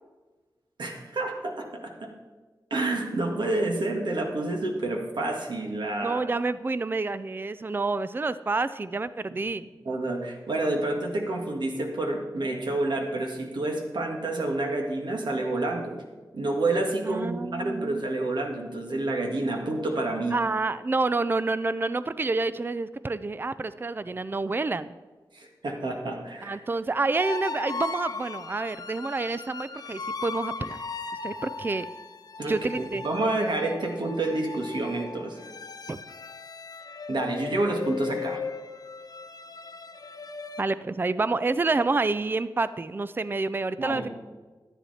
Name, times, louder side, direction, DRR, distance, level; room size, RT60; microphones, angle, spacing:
voice 1, 0.8-2.1 2.7-6.2 9.9-16.0 16.3-20.4 25.3-26.6 32.4-35.4 37.1-38.4 43.8-44.1, right 2 dB, 75° right, 2 dB, 1.9 m, -29 dB
voice 2, 6.0-9.6 17.0-18.1 20.3-24.9 26.4-30.8 31.2-31.9 32.5-33.0 35.9-36.0 40.6-44.1, right 3 dB, 25° right, 15 dB, 0.4 m, -28 dB
sound 1, 27.1-40.6, left 4 dB, 55° left, 0.6 m, -38 dB
11.5 x 10.0 x 4.2 m, 1.3 s
wide cardioid pair, 65°, 8 cm